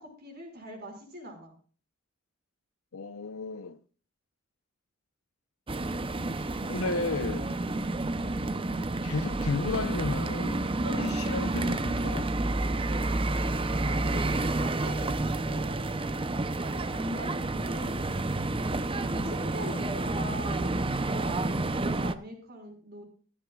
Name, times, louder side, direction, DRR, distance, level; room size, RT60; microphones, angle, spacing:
voice 1, 0.0-1.5 13.8-16.2 16.7-18.1 19.2-20.7 21.0-23.0, equal, 50° right, 5.6 m, -41 dB
voice 2, 2.9-3.8 6.7-7.5 9.0-12.3 19.0-19.3, left 4 dB, 75° left, 0.8 m, -33 dB
sound 1, 5.7-22.1, right 2 dB, 25° right, 0.7 m, -30 dB
15.0 x 13.5 x 2.4 m
head